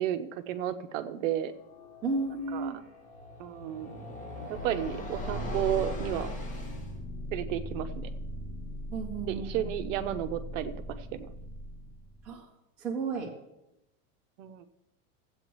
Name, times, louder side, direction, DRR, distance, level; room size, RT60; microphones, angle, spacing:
voice 1, 0.0-1.5 2.5-2.7 3.4-4.1 4.5-6.4 7.3-8.1 9.3-11.3 14.4-14.7, right 11 dB, 60° right, 10 dB, 0.7 m, -33 dB
sound 1, 1.5-6.9, left 1 dB, 15° left, 1.1 m, -42 dB
voice 2, 2.0-2.8 8.9-9.7 12.2-12.5 12.8-13.3, right 3 dB, 5° right, -4 dB, 0.3 m, -33 dB
sound 2, 4.5-12.4, equal, 45° left, 1.5 m, -39 dB
15.5 x 8.0 x 3.0 m, 0.92 s
supercardioid pair, 170°, 45 cm